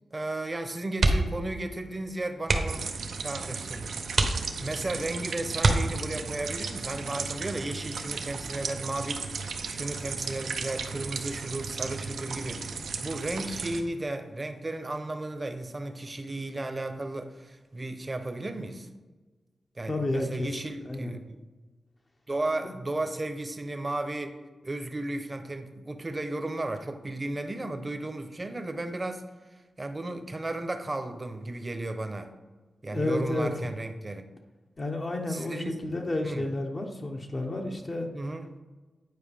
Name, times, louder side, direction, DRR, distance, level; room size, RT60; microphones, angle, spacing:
voice 1, 0.1-3.9 4.2-18.9 19.8-21.4 22.3-24.4 24.6-29.2 29.8-32.3 32.8-34.2 35.3-35.8 36.2-36.5 38.1-38.5, right 2 dB, 30° right, 7 dB, 0.8 m, -34 dB
sound 1, 0.9-1.5 1.8-1.9 2.4-2.9 3.5-3.6 4.1-4.9 5.6-6.3 7.9-8.2 8.6-8.7, right 2 dB, 60° right, 0.9 m, -25 dB
sound 2, 2.7-13.8, right 5 dB, 85° right, 0.6 m, -36 dB
voice 2, 19.9-20.5 20.8-21.2 32.9-33.5 34.8-38.1, left 2 dB, 40° left, 1 dB, 0.9 m, -31 dB
9.4 x 4.5 x 3.5 m, 1.3 s
cardioid pair, 65°, 0 cm